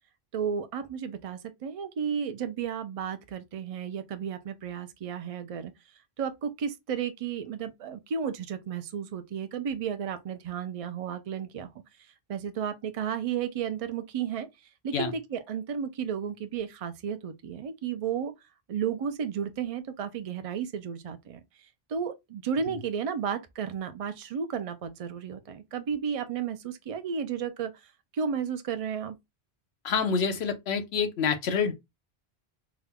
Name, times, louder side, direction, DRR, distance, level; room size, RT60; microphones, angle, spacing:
voice 1, 0.3-5.7 6.2-11.7 12.3-14.5 14.8-18.3 18.7-21.4 21.9-29.2, right 7 dB, 45° right, 0.5 m, -33 dB
voice 2, 29.8-31.7, left 6 dB, 90° left, 1.0 m, -27 dB
3.6 x 2.2 x 3.4 m
omnidirectional pair, 1.1 m